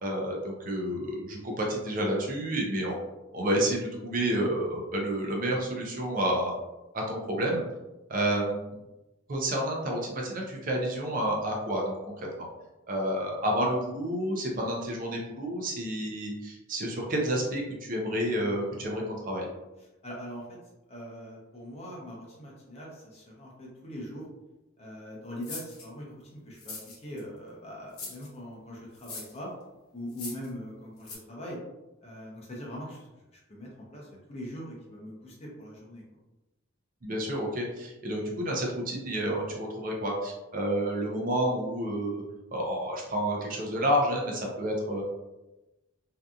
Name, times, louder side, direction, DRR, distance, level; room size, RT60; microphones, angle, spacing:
voice 1, 0.0-3.0 3.3-6.5 6.9-7.6 8.1-8.7 9.3-12.5 12.9-19.5 37.0-42.2 42.5-45.0, right 1 dB, 40° right, -1 dB, 0.5 m, -30 dB
voice 2, 20.0-20.6 20.9-24.2 24.8-26.1 26.3-26.8 27.0-29.5 29.9-31.6 32.0-33.1 33.3-36.0, equal, 30° left, -3 dB, 0.6 m, -42 dB
sound 1, 25.4-25.9 26.5-27.2 27.9-28.3 29.0-29.4 30.1-30.5 31.0-31.2, left 3 dB, 80° left, 0.9 m, -40 dB
2.6 x 2.4 x 2.3 m, 1.0 s
head